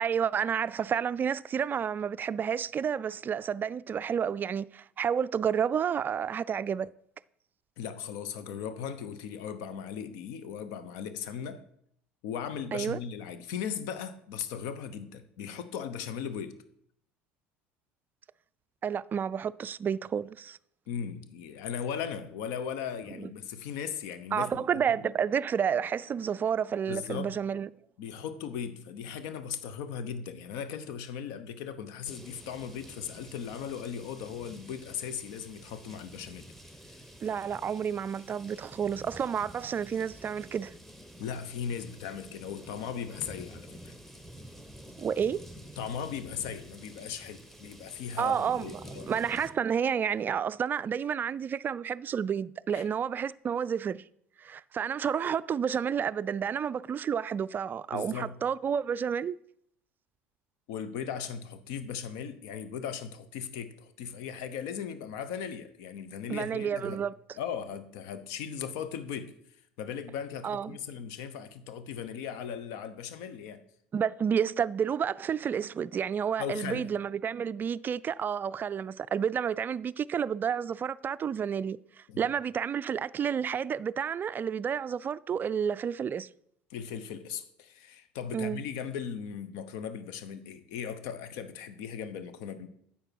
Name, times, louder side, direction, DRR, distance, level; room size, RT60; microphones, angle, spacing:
voice 1, 0.0-6.9 12.7-13.0 18.8-20.6 23.2-23.3 24.3-27.7 37.2-40.7 45.0-45.5 48.2-48.8 49.1-54.0 54.4-59.4 66.3-67.1 70.4-70.8 73.9-81.8 82.2-86.3 88.3-88.6, right 7 dB, 30° right, 0.3 m, -30 dB
voice 2, 7.8-11.6 12.2-16.6 20.9-25.1 26.9-27.3 28.0-36.4 41.2-43.9 45.8-49.1 52.7-52.8 57.9-58.4 60.7-67.0 67.4-69.3 69.8-73.6 76.4-76.9 82.1-82.3 86.7-92.7, left 7 dB, 65° left, 0.9 m, -38 dB
sound 1, 32.1-49.5, equal, 5° left, 1.3 m, -49 dB
9.7 x 7.1 x 4.6 m
hypercardioid pair, 70°, 6 cm